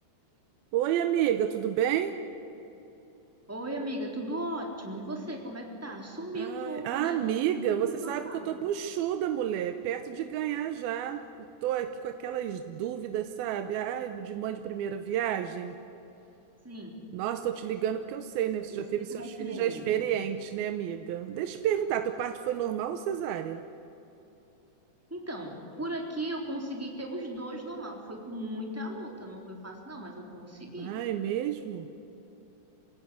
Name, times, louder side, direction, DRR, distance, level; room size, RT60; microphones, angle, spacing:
voice 1, 0.7-2.2 6.3-11.2 11.6-15.7 17.1-23.6 30.8-31.9, right 10 dB, 85° right, 8 dB, 2.7 m, -30 dB
voice 2, 3.5-8.7 16.6-16.9 18.7-20.1 25.1-30.9, right 1 dB, 5° right, 0 dB, 3.0 m, -37 dB
28.0 x 16.5 x 9.8 m, 2.9 s
omnidirectional pair, 4.3 m